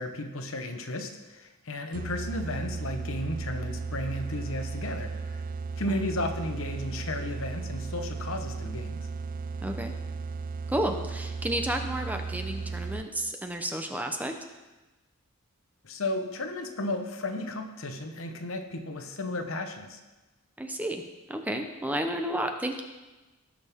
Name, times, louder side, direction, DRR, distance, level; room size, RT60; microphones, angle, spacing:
voice 1, 0.0-5.4 5.8-9.1 15.8-20.0, left 1 dB, 70° left, 6 dB, 1.0 m, -34 dB
sound 1, 1.9-13.3, right 4 dB, 40° right, 0.3 m, -35 dB
voice 2, 9.6-9.9 10.7-14.3 20.6-21.0 21.3-22.8, right 1 dB, 10° right, 5 dB, 0.7 m, -31 dB
17.5 x 6.4 x 3.6 m, 1.2 s
head